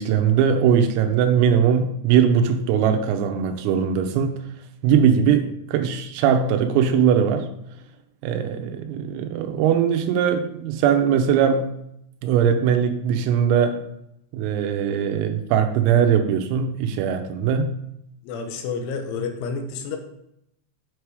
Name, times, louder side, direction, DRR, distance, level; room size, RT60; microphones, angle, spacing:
voice 1, 0.0-4.4 4.8-7.5 8.2-11.7 12.2-13.8 14.3-17.7, right 8 dB, 85° right, 6 dB, 3.4 m, -20 dB
voice 2, 18.2-20.0, left 5 dB, 80° left, 5 dB, 3.1 m, -29 dB
8.9 x 4.8 x 4.7 m, 0.79 s
omnidirectional pair, 5.9 m